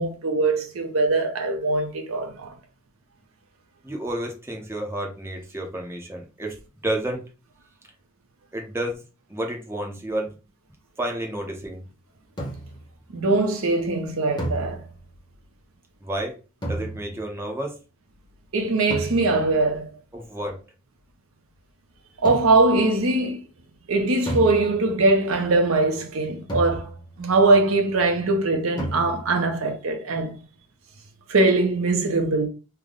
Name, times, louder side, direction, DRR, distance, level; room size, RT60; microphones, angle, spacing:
voice 1, 0.0-2.5 13.1-14.8 18.5-19.9 22.2-23.4 23.9-30.4 31.3-32.5, right 2 dB, 70° right, 0.7 m, -21 dB
voice 2, 3.8-6.6 6.8-7.2 8.5-9.0 9.3-10.3 11.0-11.8 16.0-16.4 16.6-17.8 20.1-20.6, right 1 dB, 10° right, 0.6 m, -30 dB
sound 1, 12.4-12.9 14.4-15.2 16.6-17.4 18.9-19.6 22.3-22.8 24.3-25.1 26.5-27.3 28.8-29.5, right 1 dB, 20° left, 1.0 m, -33 dB
3.4 x 2.2 x 3.6 m
head